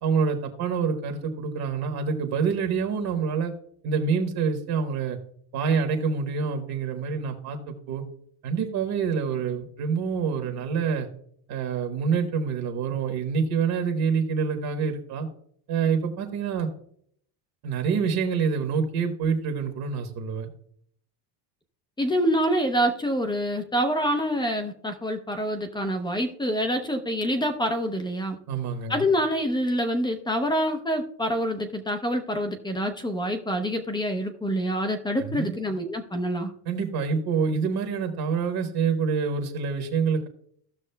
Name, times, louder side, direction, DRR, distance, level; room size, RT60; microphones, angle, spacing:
voice 1, 0.0-3.5 3.8-5.2 5.5-8.0 8.4-11.1 11.5-15.3 15.7-16.7 17.6-20.5 28.5-29.0 35.3-35.5 36.7-40.3, right 5 dB, 50° right, 4 dB, 1.3 m, -26 dB
voice 2, 22.0-28.4 28.9-36.5, equal, 10° left, 7 dB, 0.5 m, -26 dB
16.0 x 6.2 x 2.2 m, 0.66 s
cardioid pair, 135°, 50 cm